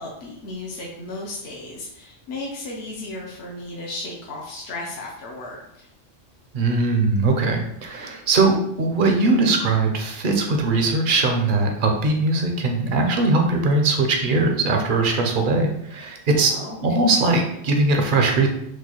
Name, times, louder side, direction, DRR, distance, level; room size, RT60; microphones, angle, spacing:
voice 1, 0.0-5.9 16.3-16.8, left 2 dB, 65° left, -3 dB, 0.9 m, -35 dB
voice 2, 6.5-16.5 16.8-18.5, right 3 dB, 55° right, 3 dB, 0.7 m, -20 dB
4.6 x 2.2 x 2.9 m, 0.76 s
omnidirectional pair, 1.3 m